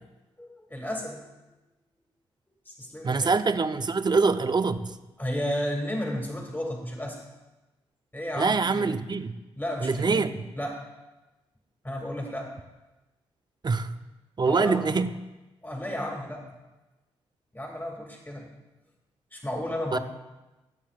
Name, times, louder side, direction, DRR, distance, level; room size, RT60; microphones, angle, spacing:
voice 1, 0.4-1.3 2.6-3.3 5.2-7.2 8.1-8.9 9.5-10.3 10.5-10.8 11.8-12.6 14.5-14.8 15.6-16.5 17.5-18.5 19.3-20.0, equal, 15° left, 0 dB, 2.5 m, -33 dB
voice 2, 3.0-5.0 8.4-9.3 9.8-10.4 13.6-13.9 14.4-15.1 19.9-20.0, right 4 dB, 35° right, 10 dB, 0.7 m, -24 dB
21.5 x 7.3 x 2.5 m, 1.1 s
hypercardioid pair, 40°, 13 cm